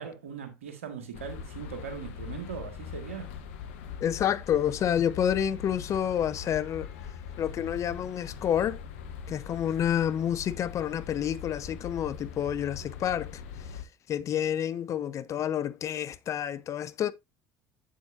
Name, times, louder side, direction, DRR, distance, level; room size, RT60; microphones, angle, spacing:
voice 1, 0.0-3.3, right 7 dB, 85° right, 1.8 m, -40 dB
sound 1, 1.1-13.8, left 7 dB, 75° left, 1.0 m, -42 dB
voice 2, 4.0-6.9 7.4-8.8 9.3-13.4 14.1-17.1, left 9 dB, 50° left, 0.7 m, -29 dB
8.1 x 7.5 x 2.6 m
hypercardioid pair, 65°, 7 cm